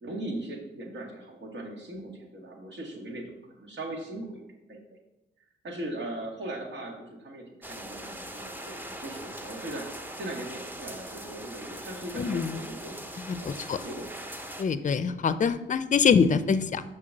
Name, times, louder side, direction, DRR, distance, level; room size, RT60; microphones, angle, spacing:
voice 1, 0.0-4.4 4.7-4.8 5.6-13.0 13.4-14.2 14.7-14.8, right 1 dB, 65° right, 1 dB, 1.8 m, -39 dB
sound 1, 7.6-14.6, equal, 10° right, 0.8 m, -41 dB
voice 2, 12.1-12.6 13.3-13.8 14.6-16.8, left 6 dB, 40° left, 13 dB, 0.5 m, -24 dB
5.8 x 4.4 x 6.4 m, 0.94 s
cardioid pair, 70°, 20 cm